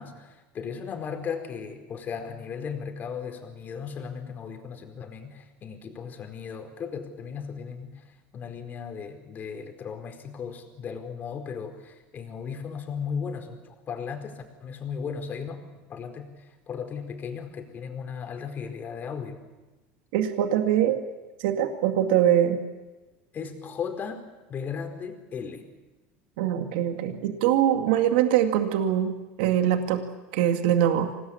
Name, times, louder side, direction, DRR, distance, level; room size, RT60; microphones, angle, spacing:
voice 1, 0.0-15.6 15.9-19.4 23.3-25.6, left 6 dB, 35° left, 6 dB, 4.6 m, -36 dB
voice 2, 20.1-21.0 21.4-22.6 26.4-30.0 30.3-31.1, right 10 dB, 80° right, 5 dB, 2.5 m, -23 dB
26.0 x 19.0 x 8.7 m, 1.2 s
supercardioid pair, 115°, 5 cm